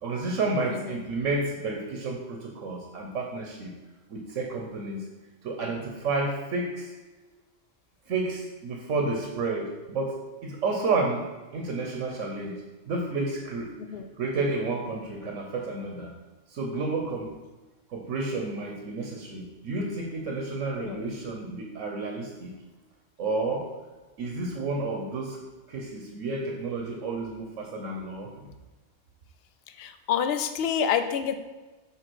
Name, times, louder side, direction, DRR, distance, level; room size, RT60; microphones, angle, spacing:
voice 1, 0.0-3.7 4.1-5.1 5.4-6.9 8.1-10.2 10.4-11.3 11.5-12.6 12.9-13.7 14.2-16.1 16.5-17.3 17.9-22.5 23.2-23.7 24.2-25.4 25.7-28.5, right 3 dB, 85° right, 1 dB, 1.3 m, -31 dB
voice 2, 0.7-1.0 13.9-14.1 20.8-21.0 29.8-31.3, left 8 dB, 60° left, 8 dB, 0.8 m, -28 dB
7.0 x 3.7 x 6.2 m, 1.2 s
omnidirectional pair, 1.3 m